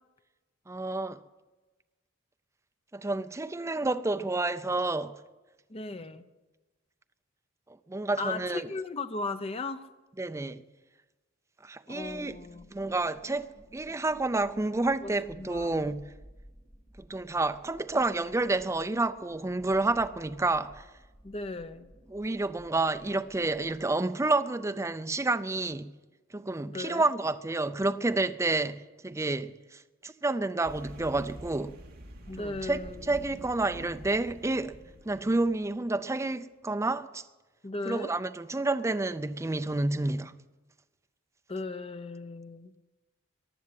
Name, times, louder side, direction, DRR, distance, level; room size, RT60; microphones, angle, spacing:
voice 1, 0.7-1.2 2.9-5.1 7.9-8.7 10.2-10.6 11.6-12.3 12.7-13.5 13.7-16.0 17.1-20.9 22.1-25.9 26.3-28.8 29.0-29.5 30.0-31.7 32.4-32.8 33.1-34.8 35.1-37.2 37.9-40.3, right 2 dB, 15° right, 0.5 m, -29 dB
voice 2, 5.7-6.3 8.2-9.9 11.9-12.7 15.0-15.9 21.2-21.9 26.7-27.1 32.3-33.5 37.6-38.1 41.5-42.8, left 3 dB, 30° left, 0.7 m, -37 dB
sound 1, 12.0-23.8, equal, 5° left, 2.0 m, -56 dB
sound 2, 30.6-35.8, equal, 50° right, 2.2 m, -47 dB
15.0 x 11.0 x 7.6 m
head